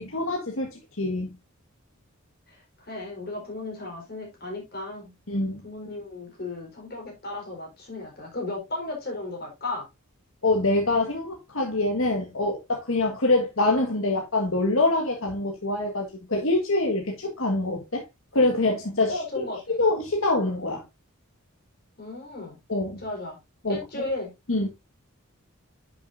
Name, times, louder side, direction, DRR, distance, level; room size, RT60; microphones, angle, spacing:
voice 1, 0.0-1.3 5.3-5.6 10.4-18.0 18.3-19.2 19.8-20.8 22.7-23.0 23.6-23.8 24.5-24.7, left 2 dB, 65° left, 1.6 m, -25 dB
voice 2, 2.5-5.1 5.6-9.9 19.1-19.8 22.0-22.6 23.0-23.4 23.7-24.3, left 2 dB, 45° left, 4.2 m, -35 dB
10.0 x 6.5 x 2.6 m
head